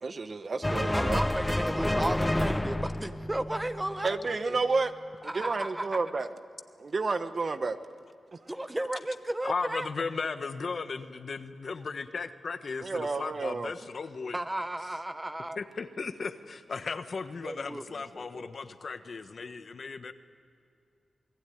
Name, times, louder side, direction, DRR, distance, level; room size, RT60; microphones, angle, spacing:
voice 1, 0.0-1.2 4.0-4.9 5.2-6.3 6.8-7.8 12.8-13.7, right 3 dB, 45° right, 10 dB, 1.2 m, -30 dB
Uplifting adventure music, 0.6-4.1, left 1 dB, 10° left, 0.7 m, -29 dB
voice 2, 0.9-4.6 5.3-6.0 8.5-9.9 14.3-15.6 17.4-18.5, right 1 dB, 15° right, 10 dB, 1.2 m, -34 dB
voice 3, 9.4-14.4 15.6-20.1, left 4 dB, 55° left, 9 dB, 1.3 m, -36 dB
28.0 x 19.0 x 9.3 m, 2.4 s
wide cardioid pair, 95°, 0 cm